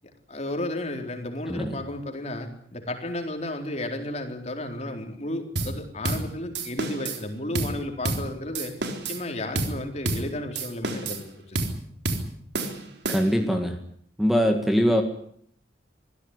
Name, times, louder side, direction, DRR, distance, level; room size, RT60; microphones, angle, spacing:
voice 1, 0.3-8.7 9.0-11.7, left 1 dB, 40° left, 4 dB, 4.1 m, -33 dB
sound 1, 5.6-5.8 6.0-6.3 6.5-7.2 7.5-7.8 8.0-8.3 8.5-9.2 9.6-9.8 10.1-10.3 10.6-11.2 11.6-11.8 12.1-12.3 12.5-13.5, right 2 dB, 80° right, 3.9 m, -29 dB
voice 2, 13.1-13.8 14.2-15.0, equal, ahead, 5 dB, 2.0 m, -22 dB
25.0 x 16.0 x 9.8 m, 0.66 s
head